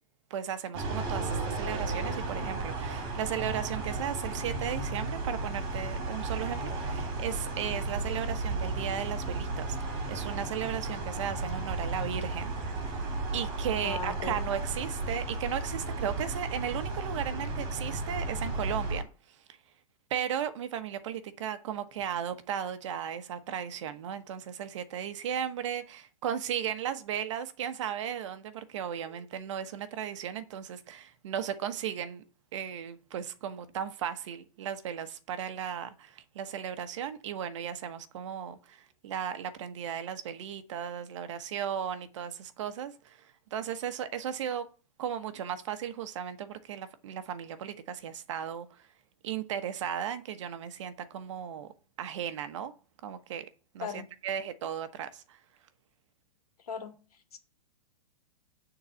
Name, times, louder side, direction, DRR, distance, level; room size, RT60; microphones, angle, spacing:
voice 1, 0.3-13.0 13.3-19.1 20.1-32.2 32.5-44.7 45.0-48.7 49.2-51.7 52.0-52.7 53.0-53.5 53.7-55.4, right 9 dB, 55° right, 1.0 m, -36 dB
sound 1, 0.7-19.0, right 3 dB, 30° right, 2.9 m, -34 dB
voice 2, 13.8-14.4 53.8-54.0 56.6-57.4, left 5 dB, 90° left, 2.1 m, -38 dB
9.7 x 4.0 x 7.0 m
supercardioid pair, 165°, 19 cm